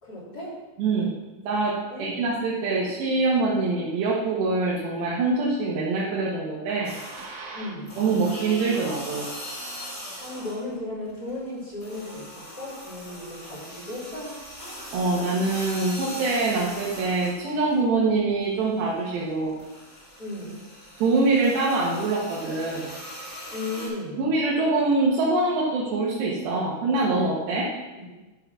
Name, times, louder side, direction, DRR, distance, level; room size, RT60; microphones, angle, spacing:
voice 1, 0.0-0.6 1.9-2.2 7.5-8.0 10.2-14.3 20.2-20.6 23.5-24.2 28.0-28.1, left 2 dB, 25° left, -7 dB, 3.5 m, -35 dB
voice 2, 0.8-1.1 1.4-7.7 8.0-9.3 14.9-19.6 21.0-22.9 24.2-27.7, right 3 dB, 85° right, -6 dB, 3.6 m, -24 dB
sound 1, 6.8-7.5 7.8-10.7 11.1-17.8 18.2-23.9, equal, 5° left, 3.0 m, -40 dB
12.5 x 5.4 x 6.0 m, 1.1 s
omnidirectional pair, 4.7 m